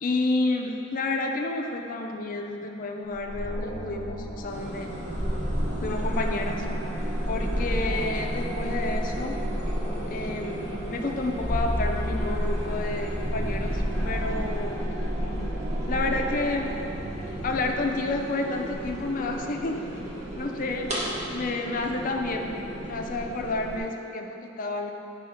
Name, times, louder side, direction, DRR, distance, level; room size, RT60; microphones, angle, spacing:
voice 1, 0.0-4.9 5.8-6.7 7.3-9.4 10.1-14.8 15.9-16.7 17.4-19.8 20.4-21.0 21.3-22.6 22.9-24.9, left 2 dB, 45° left, 3 dB, 0.4 m, -30 dB
sound 1, 3.1-17.7, equal, 10° right, 1.4 m, -31 dB
sound 2, 4.5-23.8, right 1 dB, 35° right, 1.1 m, -37 dB
5.0 x 3.4 x 5.5 m, 2.9 s
head